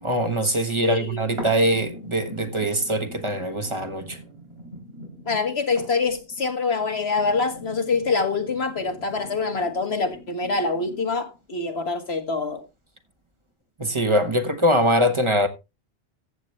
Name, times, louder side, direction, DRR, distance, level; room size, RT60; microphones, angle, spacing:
voice 1, 0.0-4.2 13.8-15.5, equal, 30° right, 1.3 m, -22 dB
voice 2, 0.8-1.2 5.3-12.6, left 4 dB, 85° left, 2.1 m, -25 dB
sound 1, 1.4-11.4 11.9-12.0, equal, 85° right, 3.8 m, -42 dB
14.5 x 8.3 x 3.2 m
omnidirectional pair, 1.0 m